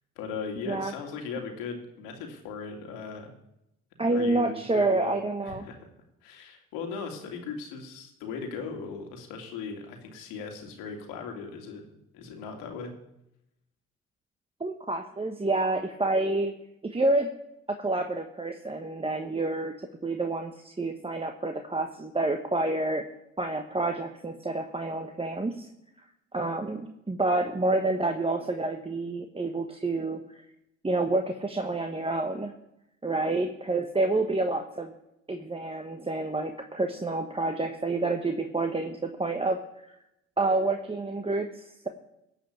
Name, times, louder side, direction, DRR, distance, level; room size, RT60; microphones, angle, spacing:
voice 1, 0.2-3.3 4.1-5.8 6.2-11.8 12.1-12.9, left 5 dB, 90° left, 4 dB, 2.3 m, -38 dB
voice 2, 4.0-5.6 14.6-16.5 16.8-17.3 17.7-19.7 20.0-23.0 23.4-25.7 26.3-30.4 30.8-32.5 33.0-34.9 35.3-39.6 40.4-41.9, right 2 dB, 20° right, 5 dB, 1.2 m, -28 dB
15.5 x 5.6 x 8.7 m, 0.85 s
supercardioid pair, 65°, 31 cm